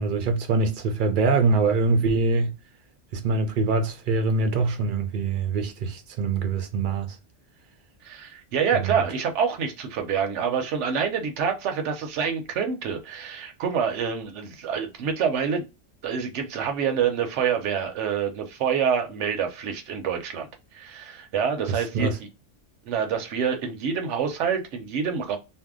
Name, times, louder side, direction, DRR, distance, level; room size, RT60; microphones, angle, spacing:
voice 1, 0.0-2.5 3.1-7.2 8.7-8.9 21.7-22.2, right 3 dB, 55° right, 0.6 m, -24 dB
voice 2, 8.0-15.7 16.0-20.5 20.7-22.1 22.9-25.4, right 7 dB, 70° right, 1.0 m, -27 dB
2.7 x 2.1 x 3.5 m
omnidirectional pair, 1.3 m